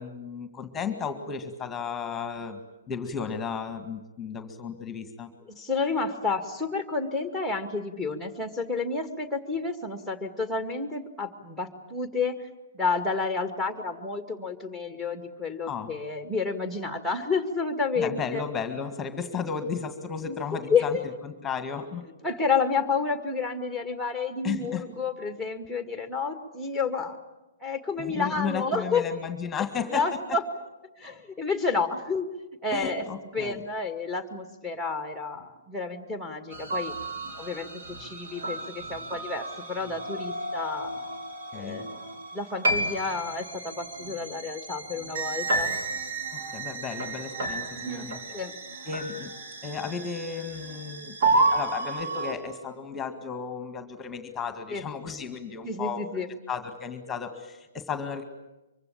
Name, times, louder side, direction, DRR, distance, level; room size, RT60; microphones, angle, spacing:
voice 1, 0.0-2.6 2.9-5.3 15.7-15.9 18.0-21.0 21.2-22.1 24.4-24.9 28.0-30.1 32.7-33.6 41.5-41.9 46.3-48.2 48.9-49.3 49.6-56.0 56.5-58.2, left 6 dB, 15° left, 8 dB, 2.0 m, -34 dB
voice 2, 5.5-12.5 12.7-18.4 20.2-20.4 20.7-21.1 22.2-27.2 27.6-29.1 29.6-29.7 29.9-30.4 31.0-32.3 32.6-33.1 33.3-37.7 38.0-40.9 41.6-42.0 42.3-45.7 47.7-48.1 48.3-48.6 54.7-54.8 55.6-56.3, left 4 dB, 5° right, 6 dB, 2.1 m, -30 dB
sound 1, 36.5-52.3, right 2 dB, 60° right, 4.7 m, -31 dB
24.5 x 24.0 x 8.7 m, 1.0 s
figure-of-eight pair, 125°, 0 cm